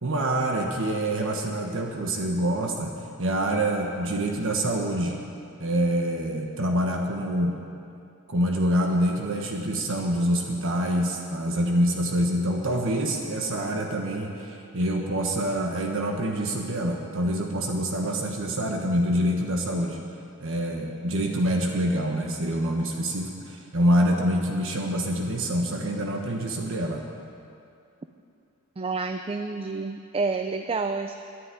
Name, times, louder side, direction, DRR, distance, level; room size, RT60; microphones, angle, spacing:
voice 1, 0.0-5.2 5.6-7.6 8.3-20.0 20.4-27.0, right 1 dB, 65° right, 1 dB, 1.4 m, -26 dB
voice 2, 28.8-31.2, right 4 dB, 25° right, 7 dB, 0.4 m, -29 dB
11.0 x 10.0 x 9.6 m, 2.5 s
head